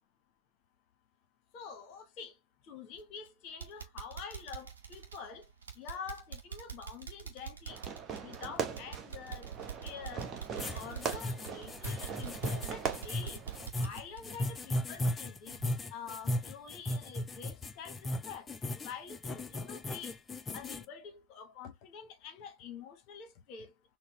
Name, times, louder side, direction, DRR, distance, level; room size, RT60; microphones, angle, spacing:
voice 1, 1.5-2.3 2.7-5.5 5.8-7.8 8.2-9.5 9.8-10.3 10.7-13.4 13.8-15.6 15.9-18.5 18.8-20.2 20.5-23.7, left 6 dB, 40° left, 0.8 m, -47 dB
sound 1, 2.9-3.3 3.6-15.2 15.5-15.6 16.1-16.2, right 8 dB, 70° right, 0.8 m, -45 dB
Fireworks, 7.7-13.7, right 6 dB, 25° right, 0.8 m, -40 dB
sound 2, 10.6-20.8, left 1 dB, 15° left, 0.4 m, -36 dB
4.1 x 2.0 x 2.8 m
figure-of-eight pair, 90°, 0 cm